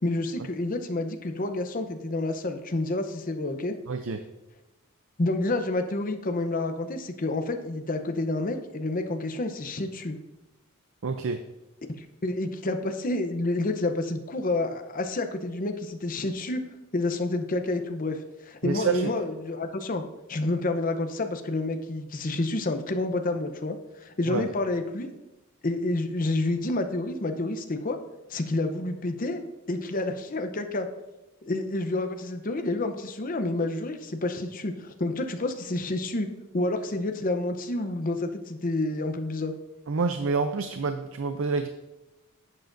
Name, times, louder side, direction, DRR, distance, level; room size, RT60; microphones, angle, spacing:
voice 1, 0.0-3.7 5.2-10.2 12.0-16.6 16.9-18.2 18.4-20.0 20.3-25.1 25.6-28.0 28.3-30.9 31.5-36.3 36.5-39.5, left 2 dB, 40° left, 6 dB, 0.7 m, -29 dB
voice 2, 3.9-4.2 11.0-11.4 18.6-19.1 24.3-24.5 39.9-41.7, right 4 dB, 60° right, 8 dB, 0.5 m, -28 dB
10.5 x 7.6 x 2.6 m, 1.0 s
head